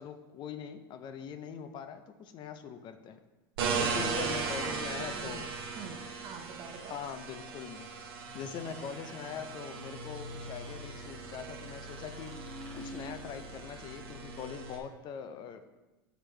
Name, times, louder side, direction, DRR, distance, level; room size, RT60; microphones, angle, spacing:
voice 1, 0.0-3.2 3.8-5.5 6.9-7.9 8.3-12.3 12.7-15.8, left 7 dB, 35° left, 10 dB, 0.5 m, -42 dB
voice 2, 3.6-7.0, right 6 dB, 40° right, 3 dB, 0.6 m, -44 dB
sound 1, 3.6-14.8, right 4 dB, 70° right, 1.0 m, -38 dB
sound 2, 8.3-13.7, equal, 10° left, 0.9 m, -51 dB
6.0 x 5.0 x 3.3 m, 1.1 s
hypercardioid pair, 105°, 13 cm